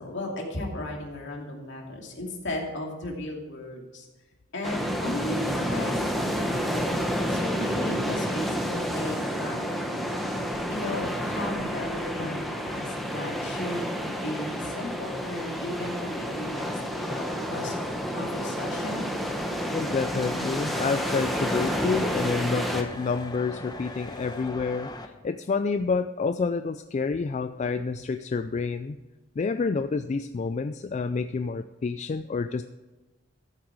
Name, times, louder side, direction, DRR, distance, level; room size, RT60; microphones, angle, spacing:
voice 1, 0.0-4.1 4.5-10.1 10.7-17.7 18.1-19.1, left 1 dB, 65° left, 0 dB, 2.5 m, -35 dB
sound 1, 4.6-22.8, equal, ahead, 1.1 m, -30 dB
sound 2, 17.6-25.1, left 2 dB, 20° left, 0.9 m, -42 dB
voice 2, 19.7-29.0 29.4-32.6, left 4 dB, 35° left, 10 dB, 0.3 m, -28 dB
13.5 x 7.6 x 4.7 m, 1.1 s
head